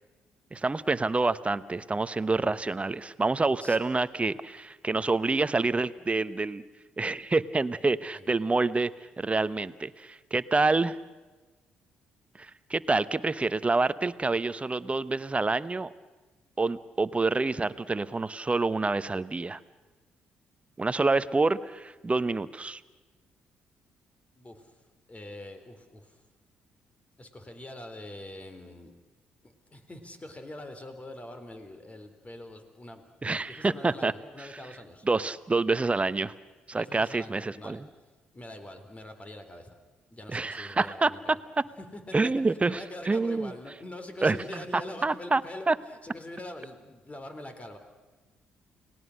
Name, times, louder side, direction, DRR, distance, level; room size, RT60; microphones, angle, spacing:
voice 1, 0.5-6.6 7.0-8.9 9.2-11.0 12.4-15.9 16.6-19.6 20.8-22.8 33.2-34.1 35.1-36.3 36.7-37.8 40.3-41.4 42.1-42.8 43.1-43.5 44.2-45.4 45.7-45.8, right 3 dB, 25° right, 16 dB, 1.0 m, -27 dB
voice 2, 24.4-24.7 25.1-26.2 27.2-28.9 29.7-35.1 36.7-37.8 38.3-39.8 40.1-41.4 41.8-47.8, left 1 dB, 25° left, 7 dB, 3.6 m, -44 dB
30.0 x 18.5 x 6.5 m, 1.2 s
hypercardioid pair, 45°, 5 cm